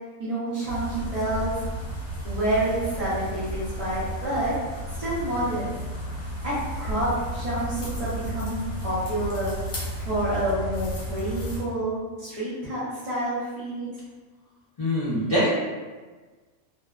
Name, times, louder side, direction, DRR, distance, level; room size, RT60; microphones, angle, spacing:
voice 1, 0.2-1.5 2.2-4.5 5.0-5.7 6.4-9.5 10.0-13.9, right 1 dB, 45° right, -11 dB, 0.4 m, -28 dB
sound 1, 0.7-11.6, equal, 70° left, 1.0 m, -33 dB
voice 2, 14.8-15.5, equal, 35° left, -13 dB, 0.6 m, -23 dB
2.5 x 2.2 x 2.2 m, 1.4 s
omnidirectional pair, 1.4 m